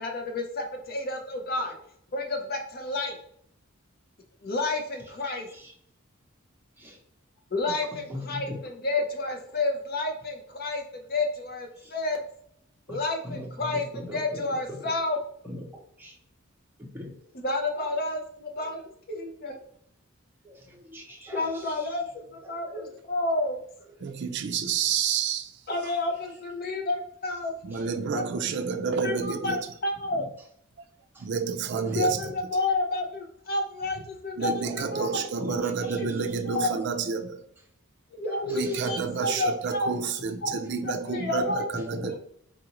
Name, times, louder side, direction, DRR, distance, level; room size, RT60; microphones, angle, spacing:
voice 1, 0.0-1.7 2.1-3.2 4.4-5.5 7.5-12.2 12.9-15.2 17.3-19.6 21.3-23.6 25.7-27.5 28.1-28.2 29.0-30.3 31.8-36.8 38.1-39.9 40.4-40.5 40.8-41.6, left 2 dB, 45° left, 0.7 m, -30 dB
voice 2, 5.2-5.7 6.8-7.0 7.9-8.6 11.8-11.9 12.9-13.0 13.2-14.4 14.7-14.9 15.4-16.2 16.8-17.2 17.8-18.0 18.6-18.7 20.4-21.9 22.4-23.0 25.7-25.8 27.7-27.8 30.1-30.2 31.1-31.2 31.9-32.2 35.4-35.6 35.8-36.2 38.2-38.8 40.4-40.7 42.0-42.1, left 1 dB, 10° right, 0.8 m, -41 dB
voice 3, 24.0-25.5 27.6-29.6 31.2-32.3 34.4-37.4 38.5-42.2, right 6 dB, 55° right, 0.4 m, -29 dB
4.0 x 2.5 x 2.9 m
head